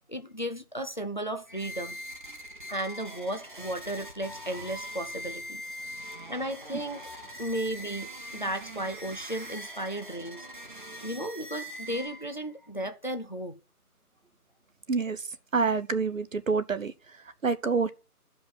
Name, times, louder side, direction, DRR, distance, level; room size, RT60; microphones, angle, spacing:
voice 1, 0.1-2.0 2.7-5.6 6.3-7.0 7.4-10.5 11.0-13.6, right 1 dB, 30° left, 0.7 m, -34 dB
sound 1, 1.5-12.5, equal, 35° right, 1.1 m, -42 dB
voice 2, 14.9-17.9, right 4 dB, 55° right, 0.9 m, -28 dB
13.5 x 5.2 x 5.6 m
figure-of-eight pair, 165°, 46 cm